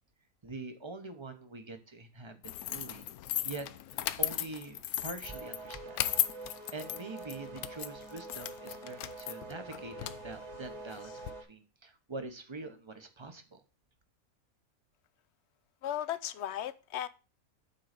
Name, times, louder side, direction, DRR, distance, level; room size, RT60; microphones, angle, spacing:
voice 1, 0.4-3.1 3.4-6.0 6.7-11.1 11.5-13.6, right 3 dB, 25° right, 0.8 m, -44 dB
sound 1, 2.4-11.3, left 13 dB, 80° left, 1.0 m, -36 dB
sound 2, 5.2-11.4, right 3 dB, 50° right, 1.6 m, -46 dB
voice 2, 15.8-17.1, left 11 dB, 65° left, 0.7 m, -36 dB
8.4 x 3.8 x 6.6 m
omnidirectional pair, 1.5 m